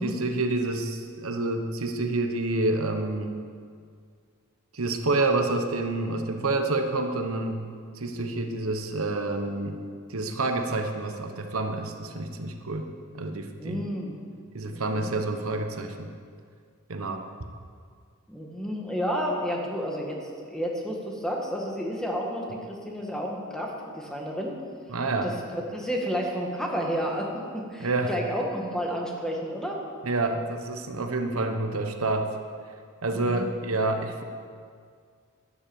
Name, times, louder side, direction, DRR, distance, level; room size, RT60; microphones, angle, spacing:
voice 1, 0.0-3.3 4.7-7.6 8.0-9.8 10.1-12.9 13.1-13.8 14.5-16.1 16.9-17.2 24.9-25.3 27.8-28.1 30.0-32.3 33.0-34.2, right 2 dB, 80° right, 5 dB, 1.2 m, -28 dB
voice 2, 13.6-14.1 14.7-15.1 18.3-24.5 25.2-29.8 33.1-33.5, equal, 5° left, -1 dB, 1.8 m, -31 dB
11.5 x 11.0 x 7.2 m, 2.1 s
head